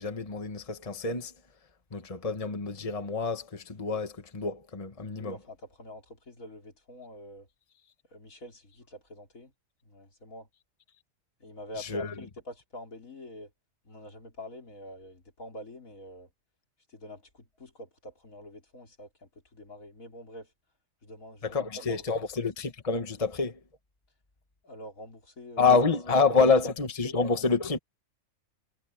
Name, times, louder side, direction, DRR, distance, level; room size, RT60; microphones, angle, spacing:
voice 1, 0.0-1.3 1.9-5.4 11.8-12.1 21.4-23.6 25.6-27.8, left 4 dB, 25° left, 1.5 m, -27 dB
voice 2, 5.1-7.5 8.1-9.5 9.8-10.5 11.4-13.5 13.8-16.3 16.9-20.5 21.0-22.2 24.6-25.6 26.3-26.7 27.0-27.2, left 1 dB, 75° left, 4.3 m, -46 dB
omnidirectional pair, 1.4 m